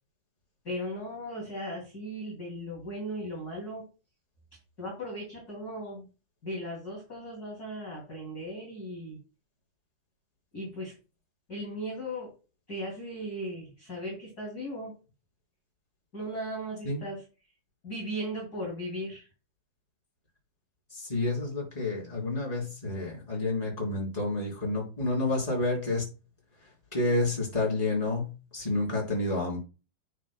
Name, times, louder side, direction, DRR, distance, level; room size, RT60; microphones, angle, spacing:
voice 1, 0.6-3.9 4.8-6.1 6.4-9.2 10.5-10.9 11.5-12.4 12.7-15.0 16.1-17.2 17.8-19.3, equal, 25° left, -3 dB, 2.9 m, -37 dB
voice 2, 20.9-26.0 26.9-28.3 28.5-29.6, left 2 dB, 10° left, -3 dB, 3.7 m, -29 dB
9.8 x 7.7 x 2.3 m, 0.32 s
omnidirectional pair, 4.4 m